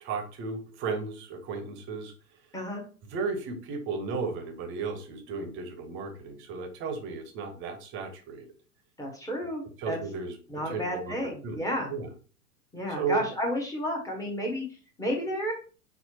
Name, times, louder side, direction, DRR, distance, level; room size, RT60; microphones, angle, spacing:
voice 1, 0.0-2.1 3.1-8.4 9.8-10.4 10.7-11.1 11.4-12.1 13.0-13.3, right 4 dB, 25° right, 5 dB, 0.9 m, -34 dB
voice 2, 9.0-10.0 10.5-11.9 12.7-14.6 15.0-15.5, equal, 5° left, 0 dB, 1.0 m, -31 dB
5.6 x 2.1 x 2.9 m, 0.37 s
figure-of-eight pair, 100°, 47 cm